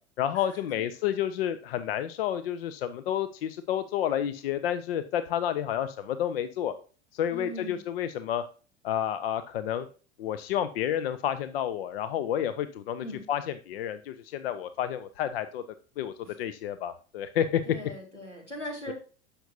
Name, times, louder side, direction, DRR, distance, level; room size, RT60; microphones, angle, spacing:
voice 1, 0.2-6.7 7.1-8.4 8.8-9.9 10.2-15.6 16.0-17.6 18.9-19.0, left 10 dB, 60° left, 13 dB, 0.6 m, -30 dB
voice 2, 7.3-7.8 13.0-13.2 16.2-16.4 17.7-18.9, equal, 90° left, 2 dB, 2.1 m, -40 dB
10.0 x 6.7 x 2.7 m, 0.37 s
figure-of-eight pair, 80°, 34 cm